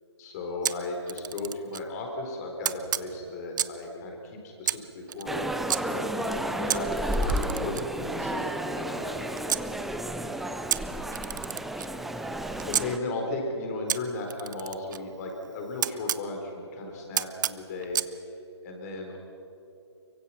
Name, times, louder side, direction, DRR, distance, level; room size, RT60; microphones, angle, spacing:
voice 1, 0.2-8.4 8.7-9.6 12.6-18.0 18.6-19.2, left 2 dB, 35° left, 2 dB, 4.4 m, -35 dB
Camera, 0.6-1.9 2.6-3.9 4.6-5.8 6.7-9.7 10.7-12.9 13.9-16.2 17.1-18.1, right 10 dB, 45° right, 0.6 m, -32 dB
sound 1, 5.3-13.0, right 1 dB, ahead, 0.5 m, -32 dB
24.0 x 23.5 x 5.9 m, 2.9 s
figure-of-eight pair, 135°, 15 cm